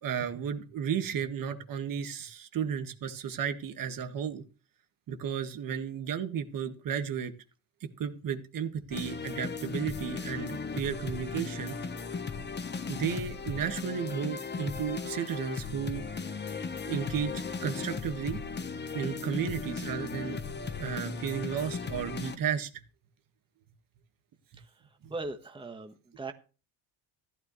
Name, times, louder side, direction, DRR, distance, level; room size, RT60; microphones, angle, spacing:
voice 1, 0.0-4.4 5.1-7.3 8.0-11.8 12.9-16.0 16.9-18.4 18.9-20.4 20.8-22.7, right 8 dB, 60° right, 8 dB, 1.8 m, -33 dB
sound 1, 8.9-22.4, left 5 dB, 25° left, 1.2 m, -37 dB
voice 2, 25.1-26.3, right 3 dB, 15° right, 6 dB, 1.4 m, -39 dB
14.5 x 12.5 x 3.2 m, 0.34 s
cardioid pair, 130°, 38 cm